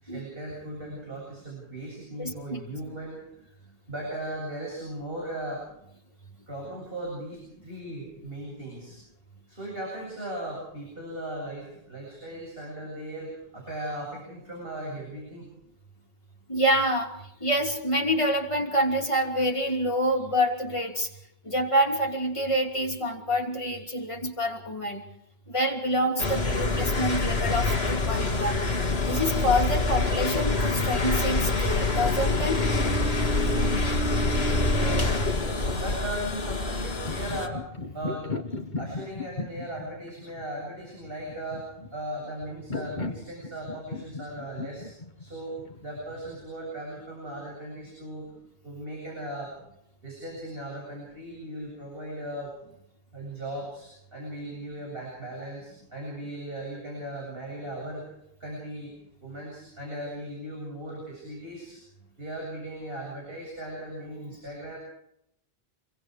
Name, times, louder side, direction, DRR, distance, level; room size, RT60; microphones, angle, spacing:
voice 1, 0.0-3.2 3.9-5.6 6.5-9.0 9.5-15.5 33.3-38.3 38.8-41.7 41.9-44.9 45.2-48.3 48.6-49.5 50.0-52.5 53.1-58.0 58.4-58.9 59.2-61.8 62.2-64.8, right 1 dB, 60° right, -3 dB, 8.3 m, -37 dB
voice 2, 2.2-2.6 16.5-17.1 17.4-21.1 21.4-25.0 25.5-28.6 29.0-32.6, equal, 30° left, 1 dB, 3.1 m, -27 dB
sound 1, 26.2-37.5, left 2 dB, 70° left, 2.2 m, -26 dB
sound 2, 36.9-46.4, left 3 dB, 45° left, 1.7 m, -37 dB
27.0 x 23.0 x 4.9 m, 0.76 s
omnidirectional pair, 1.1 m